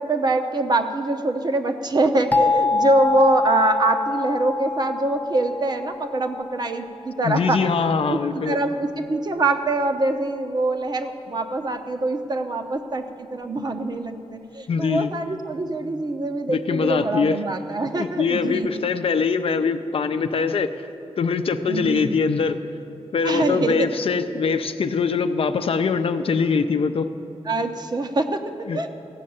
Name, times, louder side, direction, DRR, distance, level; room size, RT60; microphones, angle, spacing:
voice 1, 0.0-18.7 21.7-22.1 23.2-23.9 27.5-28.4 28.7-28.9, right 2 dB, 40° right, 6 dB, 0.8 m, -24 dB
sound 1, 2.3-7.0, left 3 dB, 15° left, 0.5 m, -25 dB
voice 2, 7.2-8.6 14.7-15.1 16.5-17.4 18.0-20.9 21.2-22.6 23.1-27.1 28.7-28.8, left 5 dB, 60° left, 9 dB, 0.6 m, -23 dB
15.0 x 6.5 x 8.6 m, 2.8 s
wide cardioid pair, 120°, 11 cm